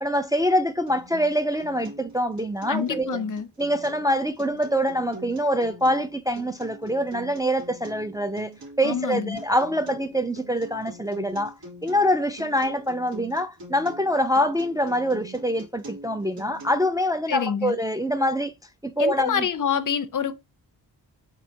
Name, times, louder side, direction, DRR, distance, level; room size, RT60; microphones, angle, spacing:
voice 1, 0.0-3.2 3.6-8.5 8.8-11.5 11.8-18.5 18.8-19.5, equal, 10° right, 0.4 m, -25 dB
Acoustic guitar, 0.9-16.9, right 2 dB, 75° right, 2.8 m, -43 dB
voice 2, 2.7-3.5 8.8-9.4 17.3-17.8 19.0-20.3, left 7 dB, 45° left, 0.6 m, -26 dB
4.1 x 3.3 x 2.7 m
cardioid pair, 55°, 42 cm